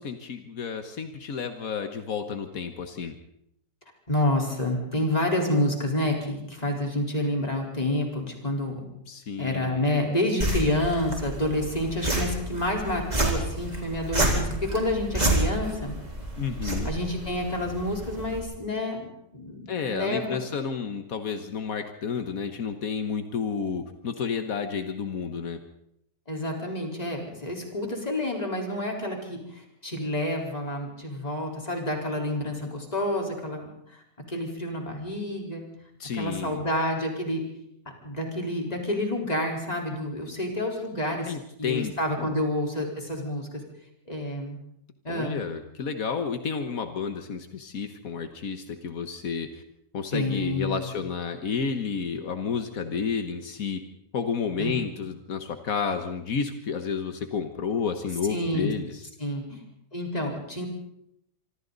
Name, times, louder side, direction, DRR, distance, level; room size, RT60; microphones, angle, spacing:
voice 1, 0.0-3.1 9.1-9.8 16.4-16.9 19.7-25.6 36.0-36.7 41.3-42.4 45.1-49.6 49.9-53.8 54.1-59.1, left 6 dB, 80° left, 7 dB, 1.7 m, -31 dB
voice 2, 4.1-8.8 9.4-15.9 16.8-19.1 19.3-20.5 26.3-34.0 34.3-35.6 36.1-37.4 38.0-43.6 44.1-44.6 45.0-45.4 50.1-50.9 54.6-54.8 58.3-58.7 59.2-59.6 59.9-60.7, left 1 dB, 30° left, 0 dB, 4.3 m, -29 dB
sound 1, 10.4-18.4, right 1 dB, 30° right, 3.8 m, -29 dB
26.0 x 25.0 x 4.0 m, 0.78 s
omnidirectional pair, 1.4 m